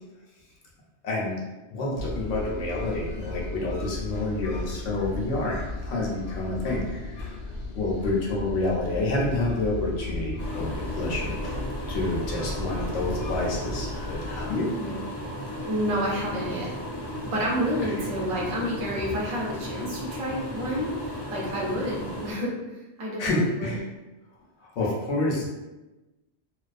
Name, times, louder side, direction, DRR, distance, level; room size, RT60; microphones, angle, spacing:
voice 1, 1.0-1.4 1.7-11.6 11.9-14.7 17.8-17.9 23.2-23.8 24.6-25.5, left 2 dB, 85° left, -3 dB, 0.9 m, -29 dB
sound 1, 1.9-14.5, left 2 dB, 60° left, 0.6 m, -35 dB
sound 2, 10.4-22.3, equal, 15° left, 0.5 m, -35 dB
voice 2, 15.5-16.8 17.2-23.8, equal, 40° right, -4 dB, 0.5 m, -30 dB
2.3 x 2.3 x 2.4 m, 1.1 s
omnidirectional pair, 1.2 m